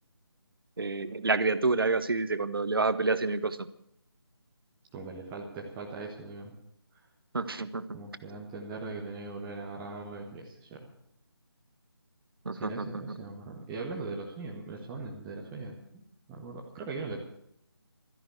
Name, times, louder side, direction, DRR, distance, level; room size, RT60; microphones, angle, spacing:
voice 1, 0.8-3.7 7.3-7.8 12.4-13.2, right 3 dB, 60° right, 14 dB, 1.1 m, -28 dB
voice 2, 4.9-6.5 7.9-10.9 12.6-16.0 16.3-17.3, right 3 dB, 10° right, -2 dB, 1.0 m, -40 dB
13.5 x 11.0 x 8.2 m, 0.72 s
figure-of-eight pair, 155°, 14 cm